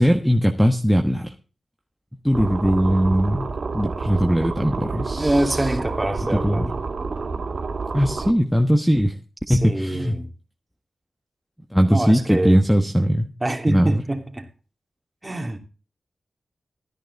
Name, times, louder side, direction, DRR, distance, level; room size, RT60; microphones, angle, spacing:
voice 1, 0.0-1.3 2.2-5.3 6.4-6.7 7.9-9.1 9.5-10.2 11.7-13.2 13.7-14.0, equal, ahead, 1.3 m, -19 dB
sound 1, 2.3-8.3, right 4 dB, 65° right, 2.3 m, -29 dB
voice 2, 5.1-6.7 9.5-10.3 11.9-12.6 13.4-14.5 15.2-15.6, right 1 dB, 20° right, 3.0 m, -25 dB
13.5 x 10.0 x 4.1 m
cardioid pair, 65°, 0 cm